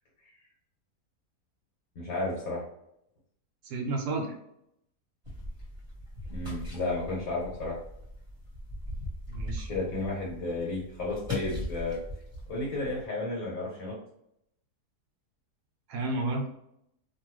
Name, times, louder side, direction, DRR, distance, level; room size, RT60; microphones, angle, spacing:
voice 1, 1.9-2.6 6.3-7.8 9.7-12.0 12.5-13.9, left 2 dB, 60° left, -4 dB, 1.5 m, -32 dB
voice 2, 3.6-4.3 9.3-9.7 15.9-16.5, right 2 dB, 80° right, 2 dB, 1.2 m, -31 dB
sound 1, 5.2-13.1, left 1 dB, 20° right, 1.2 m, -40 dB
2.9 x 2.6 x 3.0 m, 0.76 s
omnidirectional pair, 1.7 m